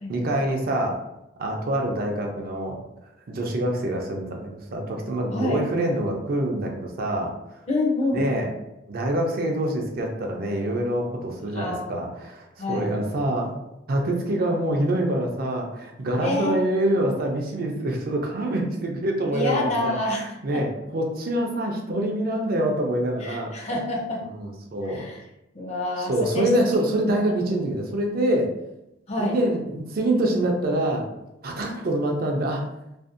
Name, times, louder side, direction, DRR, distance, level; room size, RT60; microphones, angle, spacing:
voice 1, 0.1-1.0 1.4-2.8 3.3-7.3 8.1-8.5 8.9-13.6 13.9-23.5 24.3-25.1 26.0-28.5 29.2-31.0 31.4-32.6, right 1 dB, 50° right, 1 dB, 0.4 m, -25 dB
voice 2, 5.3-5.6 7.7-8.2 11.5-11.9 12.6-12.9 16.2-16.7 19.3-20.6 23.2-24.2 24.9-25.2 25.5-26.5 29.1-29.4, left 2 dB, 35° left, -2 dB, 0.5 m, -27 dB
2.5 x 2.1 x 2.4 m, 0.89 s
head